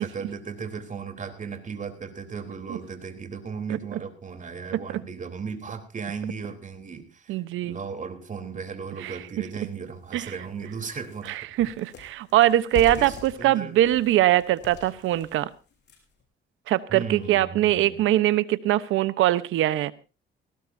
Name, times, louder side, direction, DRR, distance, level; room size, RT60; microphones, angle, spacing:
voice 1, 0.0-7.3 7.6-11.3 12.9-13.7 16.9-18.0, right 5 dB, 40° right, 6 dB, 3.8 m, -36 dB
voice 2, 7.3-7.8 9.0-9.2 10.1-10.3 11.3-15.5 16.7-19.9, right 14 dB, 90° right, 15 dB, 1.1 m, -22 dB
sound 1, 9.1-9.2 9.7-9.8 10.2-16.2, left 5 dB, 60° left, 6.2 m, -42 dB
19.0 x 18.5 x 2.8 m, 0.32 s
cardioid pair, 90°, 20 cm